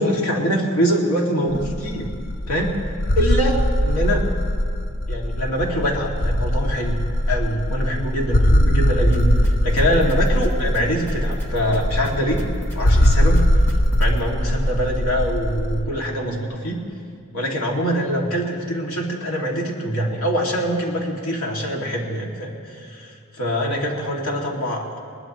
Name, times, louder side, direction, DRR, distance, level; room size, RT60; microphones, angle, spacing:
voice 1, 0.0-2.1 2.5-2.8 3.1-4.3 5.1-7.0 7.3-9.3 9.6-12.4 12.7-13.5 14.0-16.8 17.3-25.0, equal, 85° left, -1 dB, 2.3 m, -24 dB
sound 1, 1.5-15.8, equal, 50° left, 0.6 m, -21 dB
sound 2, 9.1-14.2, equal, 10° left, 1.3 m, -38 dB
21.0 x 20.0 x 3.1 m, 2.3 s
head